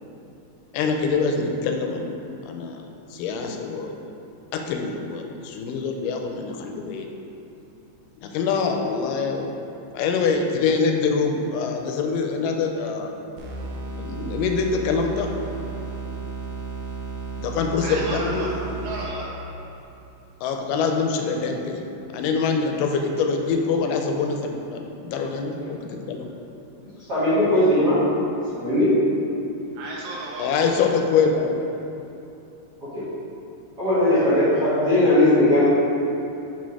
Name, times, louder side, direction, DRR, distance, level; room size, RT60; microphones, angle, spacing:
voice 1, 0.7-2.2 2.5-2.8 3.1-3.9 4.5-7.1 8.2-9.5 9.9-13.1 14.0-15.3 17.4-18.5 20.4-21.8 22.1-26.3 30.4-31.6, left 5 dB, 80° left, 3 dB, 2.1 m, -24 dB
sound 1, 13.4-19.4, right 5 dB, 90° right, 1.5 m, -33 dB
voice 2, 17.8-19.6 29.7-30.5, right 2 dB, 75° right, -4 dB, 2.0 m, -33 dB
voice 3, 27.1-28.0 28.5-29.0 32.8-33.1 33.8-35.7, left 1 dB, 55° right, -10 dB, 1.2 m, -19 dB
6.2 x 4.3 x 4.8 m, 2.8 s
omnidirectional pair, 3.9 m